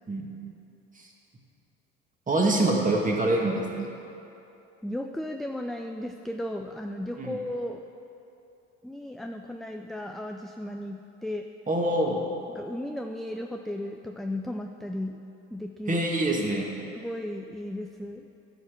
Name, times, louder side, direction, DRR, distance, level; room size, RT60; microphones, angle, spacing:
voice 1, 2.3-3.9 7.2-7.4 11.7-12.2 15.9-16.7, right 2 dB, 25° right, 0 dB, 2.2 m, -25 dB
voice 2, 4.8-7.8 8.8-11.4 12.5-15.2 15.5-16.0 16.9-18.3, left 1 dB, ahead, 4 dB, 0.5 m, -35 dB
12.0 x 6.4 x 6.4 m, 2.8 s
hypercardioid pair, 70°, 32 cm